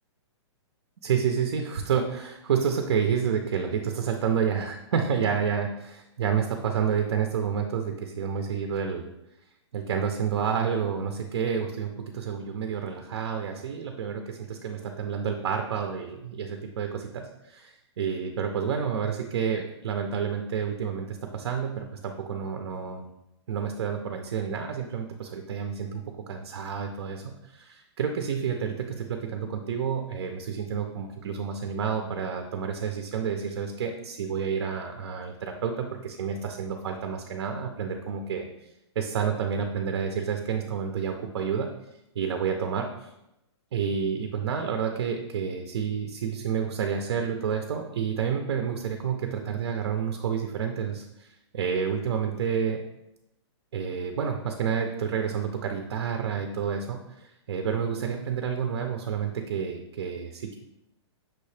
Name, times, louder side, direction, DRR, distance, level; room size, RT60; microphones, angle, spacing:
voice 1, 1.0-9.1 9.7-23.1 23.5-38.5 39.0-41.7 42.2-43.1 43.7-52.8 53.7-60.6, right 7 dB, 60° right, 4 dB, 0.5 m, -29 dB
6.0 x 2.8 x 3.2 m, 0.88 s
hypercardioid pair, 170°, 15 cm